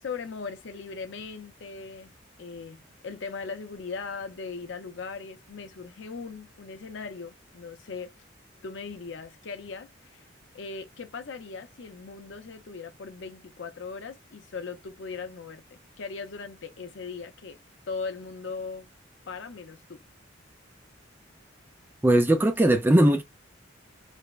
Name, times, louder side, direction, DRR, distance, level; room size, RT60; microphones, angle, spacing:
voice 1, 0.0-2.1 2.4-8.1 8.6-10.2 10.5-15.6 16.0-17.6 17.9-18.9 19.3-20.0, left 4 dB, 65° left, 0.5 m, -39 dB
voice 2, 22.0-23.2, right 1 dB, 10° right, 0.4 m, -19 dB
3.3 x 2.0 x 2.3 m
head